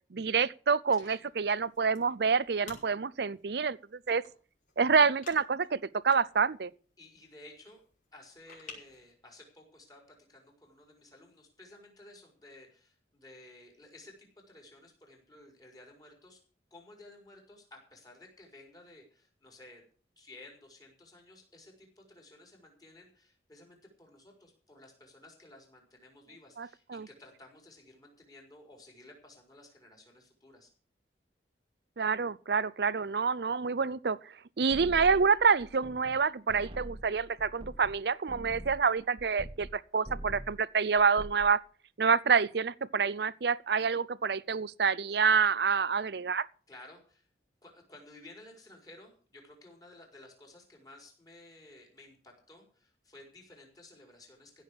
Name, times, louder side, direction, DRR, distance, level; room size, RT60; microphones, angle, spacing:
voice 1, 0.1-3.8 4.1-4.2 4.8-6.7 26.6-27.1 32.0-41.6 42.0-46.5, right 5 dB, 60° right, 0.6 m, -27 dB
sound 1, 0.9-9.1, left 4 dB, 45° left, 5.6 m, -55 dB
voice 2, 7.0-7.9 8.1-16.4 16.7-19.8 20.2-30.7 46.7-47.3 47.6-54.6, left 2 dB, 20° left, 4.7 m, -55 dB
sound 2, 34.7-36.2 36.5-39.8 40.0-40.6 41.0-41.5, right 1 dB, 30° right, 1.4 m, -44 dB
16.0 x 6.4 x 8.5 m
head